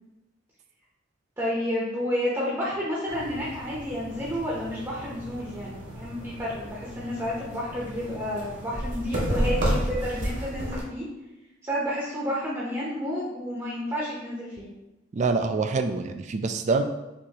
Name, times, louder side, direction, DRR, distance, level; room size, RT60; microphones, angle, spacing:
voice 1, 1.4-11.1 11.6-14.7, equal, 15° right, -5 dB, 0.7 m, -30 dB
sound 1, 3.1-10.8, equal, 65° right, 1.3 m, -32 dB
voice 2, 15.1-16.8, right 4 dB, 40° right, 8 dB, 0.3 m, -25 dB
6.0 x 2.7 x 2.8 m, 1.0 s
head